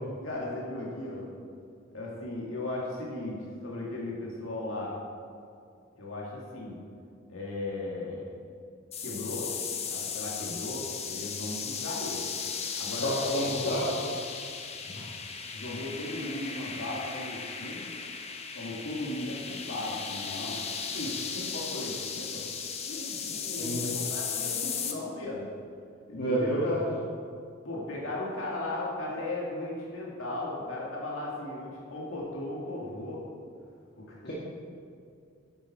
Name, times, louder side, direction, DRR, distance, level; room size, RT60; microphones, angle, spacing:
voice 1, 0.2-1.3 1.9-4.9 6.0-6.8 7.3-8.3 9.0-9.5 9.9-12.2 12.8-13.1 13.6-13.7 14.8-15.1 15.5-17.9 18.5-20.6 20.9-22.4 22.9-25.5 26.1-26.7 27.6-33.2 34.0-34.3, left 2 dB, 70° left, -4 dB, 2.0 m, -36 dB
sound 1, 8.9-24.9, left 6 dB, 30° left, 0.8 m, -36 dB
voice 2, 13.0-14.1 23.6-23.8 26.2-26.8 34.2-34.3, equal, 50° left, -7 dB, 1.6 m, -29 dB
10.5 x 8.9 x 4.3 m, 2.4 s
head